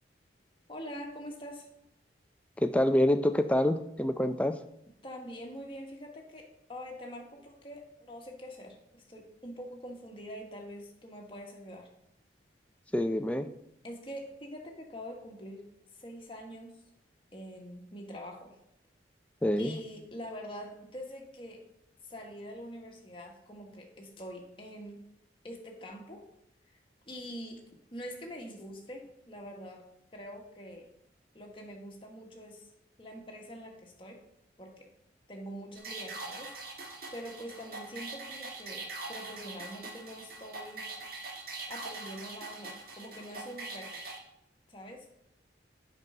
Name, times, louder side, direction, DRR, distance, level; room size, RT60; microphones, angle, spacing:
voice 1, 0.7-1.7 5.0-11.9 13.8-15.7 15.9-16.7 17.3-18.5 19.6-21.6 22.1-25.1 25.4-26.2 27.1-27.6 27.9-29.8 30.1-30.9 31.3-32.7 33.0-34.2 34.6-34.9 35.3-36.5 37.1-40.9 41.7-44.0 44.7-45.1, equal, 25° left, 0 dB, 1.4 m, -44 dB
voice 2, 2.6-4.6 12.9-13.5 19.4-19.8, left 1 dB, 5° left, 9 dB, 0.4 m, -26 dB
sound 1, 35.8-44.2, right 3 dB, 50° right, 1.4 m, -42 dB
8.2 x 5.3 x 5.6 m, 0.79 s
head